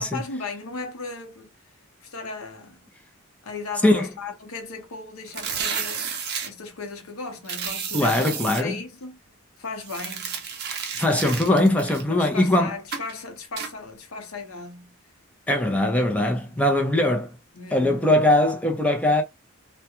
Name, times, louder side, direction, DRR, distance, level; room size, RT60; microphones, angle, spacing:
voice 1, 0.0-1.5 2.0-2.8 3.4-9.2 9.6-10.4 12.1-14.9 16.5-16.6 17.5-18.1, left 4 dB, 75° left, 0.7 m, -36 dB
sound 1, 5.3-6.5 7.4-8.6 9.8-12.5 12.9-13.1 13.6-13.7, right 6 dB, 50° right, 0.6 m, -31 dB
voice 2, 7.9-8.7 11.0-12.7 15.5-17.3 17.7-19.2, left 1 dB, 5° left, 0.5 m, -21 dB
2.3 x 2.2 x 2.8 m
head